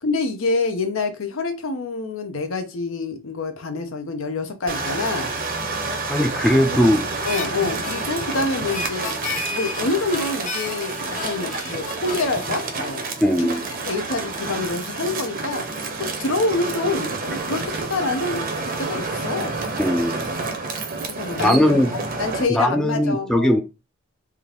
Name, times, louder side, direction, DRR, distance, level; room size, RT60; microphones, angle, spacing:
voice 1, 0.0-5.3 6.7-6.9 7.2-9.1 9.5-13.1 13.4-13.5 13.8-19.6 21.1-23.6, left 3 dB, 80° left, 0.7 m, -26 dB
sound 1, 4.7-22.4, right 3 dB, 45° right, 0.6 m, -29 dB
voice 2, 6.1-7.0 13.2-13.6 19.8-20.2 21.4-21.9 22.5-23.6, equal, 5° left, 0.3 m, -19 dB
Harmonica, 7.2-13.6, left 3 dB, 40° left, 0.8 m, -33 dB
3.4 x 2.4 x 3.0 m
head